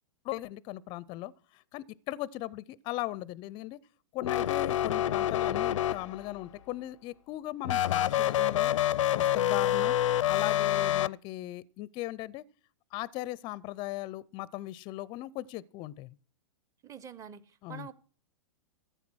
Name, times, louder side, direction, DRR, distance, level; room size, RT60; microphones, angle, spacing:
voice 1, 0.2-3.8 4.1-8.7 9.1-12.4 12.9-16.2 17.6-17.9, left 16 dB, 30° left, 0.5 m, -38 dB
sound 1, 4.2-6.4 7.6-11.1, left 12 dB, 80° left, 0.5 m, -27 dB
voice 2, 16.8-17.9, right 8 dB, 20° right, 0.8 m, -46 dB
14.0 x 8.1 x 6.2 m
hypercardioid pair, 135°, 16 cm